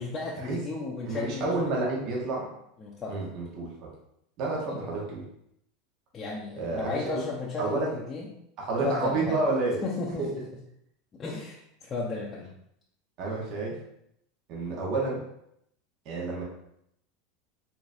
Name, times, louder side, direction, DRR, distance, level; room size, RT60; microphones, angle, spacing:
voice 1, 0.0-1.7 2.8-3.2 4.6-5.0 6.1-8.3 8.8-9.4 9.8-10.4 11.1-12.5, left 4 dB, 25° left, -5 dB, 0.7 m, -34 dB
voice 2, 1.0-2.5 3.1-3.9 4.4-5.2 6.6-7.2 7.6-7.9 8.6-9.8 10.2-10.4 13.2-13.8 14.5-15.2 16.0-16.4, right 3 dB, 55° right, -3 dB, 1.3 m, -30 dB
4.8 x 3.6 x 2.7 m, 0.76 s
supercardioid pair, 120°, 0 cm